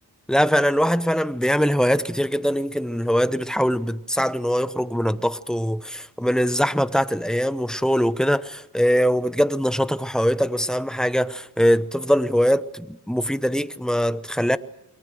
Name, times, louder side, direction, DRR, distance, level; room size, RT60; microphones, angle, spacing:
voice 1, 0.3-14.6, equal, ahead, 1.0 m, -22 dB
29.0 x 22.5 x 6.4 m
wide cardioid pair, 80°, 38 cm